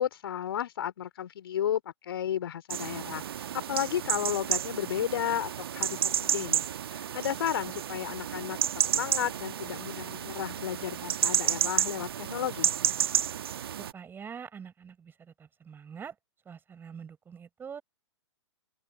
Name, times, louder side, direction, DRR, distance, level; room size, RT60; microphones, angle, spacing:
voice 1, 0.0-3.2 3.5-6.6 6.9-8.6 8.9-12.7, left 10 dB, 55° left, 3.3 m, -33 dB
sound 1, 2.7-13.9, right 10 dB, 55° right, 1.5 m, -31 dB
voice 2, 13.8-16.2 16.5-17.8, right 7 dB, 15° right, 5.4 m, -44 dB
open air
figure-of-eight pair, 115°, 15 cm